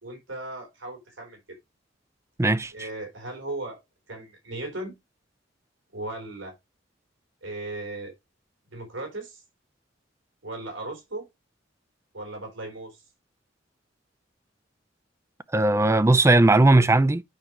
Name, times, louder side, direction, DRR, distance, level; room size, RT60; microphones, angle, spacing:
voice 1, 0.0-1.4 2.7-3.8 4.1-4.9 5.9-6.5 7.4-8.1 8.7-9.4 10.4-11.3 12.1-13.0, right 2 dB, 90° right, 3.7 m, -36 dB
voice 2, 2.4-2.7 15.5-17.2, right 2 dB, 15° right, 0.4 m, -18 dB
9.0 x 5.8 x 3.0 m
head